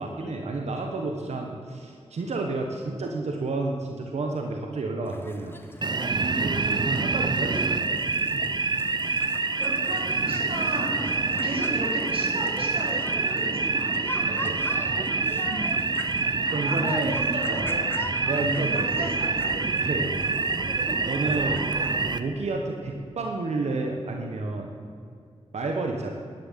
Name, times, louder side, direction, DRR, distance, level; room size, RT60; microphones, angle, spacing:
voice 1, 0.0-6.1 6.4-8.0 8.3-8.5 14.3-14.8 16.5-17.2 17.5-17.7 18.3-19.1 19.8-20.2 21.1-21.7 22.2-24.7 25.5-26.1, right 3 dB, 85° right, 2 dB, 1.4 m, -30 dB
sound 1, 5.1-22.0, left 2 dB, 20° left, 1.3 m, -42 dB
sound 2, 5.8-22.2, right 4 dB, 40° right, 0.7 m, -26 dB
voice 2, 6.2-6.5 9.6-11.1 11.4-14.0 15.4-15.8 16.4-17.9 18.5-19.6 20.0-20.1, right 1 dB, 60° right, -3 dB, 4.4 m, -35 dB
11.5 x 11.0 x 7.5 m, 2.4 s
wide cardioid pair, 110°, 11 cm